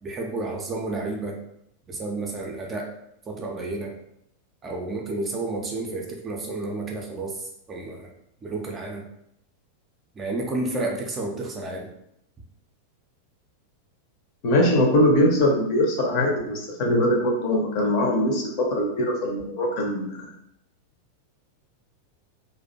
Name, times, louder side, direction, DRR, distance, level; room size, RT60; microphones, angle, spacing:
voice 1, 0.0-1.4 1.9-2.9 3.3-3.9 4.6-7.4 7.7-8.1 8.4-9.0 10.2-11.9, right 2 dB, 20° right, 0 dB, 0.4 m, -31 dB
voice 2, 14.4-20.2, left 1 dB, 45° left, -1 dB, 0.6 m, -22 dB
2.4 x 2.1 x 2.6 m, 0.77 s
figure-of-eight pair, 90°, 0 cm